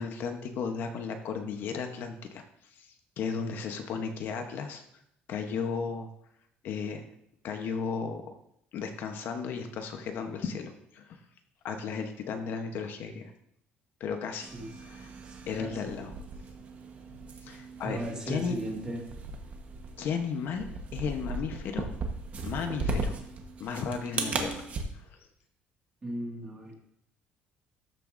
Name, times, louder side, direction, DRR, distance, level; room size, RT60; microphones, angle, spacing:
voice 1, 0.0-4.8 5.3-6.1 6.6-7.1 7.4-8.4 8.7-11.2 11.6-13.3 14.0-14.5 14.8-15.1 15.5-16.1 17.4-18.0 18.3-18.6 20.0-20.7 20.9-21.9 22.4-23.1 23.6-24.6 24.9-25.2, left 6 dB, 60° left, 6 dB, 0.9 m, -34 dB
sound 1, 14.4-24.8, right 3 dB, 40° right, 1.1 m, -37 dB
voice 2, 15.2-16.0 17.8-19.0 26.0-26.7, right 1 dB, 20° right, -1 dB, 1.9 m, -37 dB
13.0 x 6.8 x 2.6 m, 0.75 s
cardioid pair, 155°, 4 cm